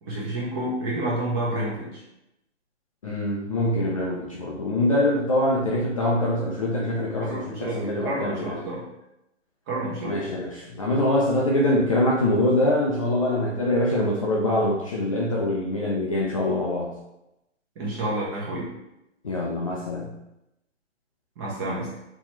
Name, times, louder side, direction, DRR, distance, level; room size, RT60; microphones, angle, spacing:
voice 1, 0.0-2.0 7.3-8.9 9.7-10.2 17.8-18.7 21.4-21.9, right 1 dB, 20° right, -4 dB, 0.9 m, -29 dB
voice 2, 3.0-8.6 10.0-16.9 19.2-20.1, left 1 dB, 30° left, -4 dB, 0.4 m, -24 dB
4.0 x 3.0 x 3.0 m, 0.87 s
figure-of-eight pair, 140°, 37 cm